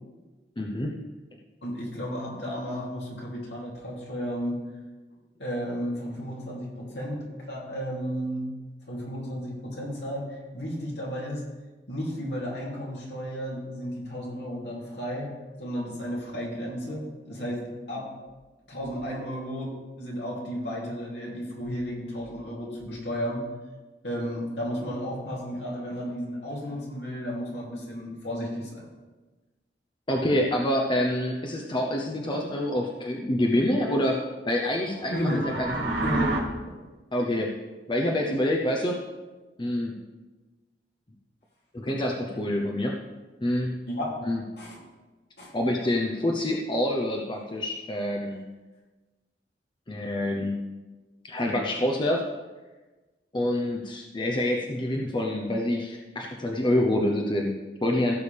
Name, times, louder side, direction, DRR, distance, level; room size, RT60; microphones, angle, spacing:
voice 1, 0.6-1.0 30.1-35.9 37.1-37.5 37.9-39.0 39.6-39.9 41.7-43.0 43.4-43.8 44.3-44.4 45.5-48.4 49.9-50.6 51.2-52.2 53.3-58.1, left 1 dB, 25° left, 0 dB, 0.8 m, -27 dB
voice 2, 1.6-4.6 5.4-8.5 8.9-11.4 11.9-15.3 15.6-18.1 18.7-23.5 24.0-28.9 35.1-35.5 36.0-36.4 43.9-44.2 44.6-44.8 45.4-45.5, equal, 70° left, -4 dB, 3.0 m, -33 dB
sound 1, 35.0-36.4, right 2 dB, 85° right, 2.2 m, -29 dB
16.0 x 6.9 x 3.5 m, 1.2 s
head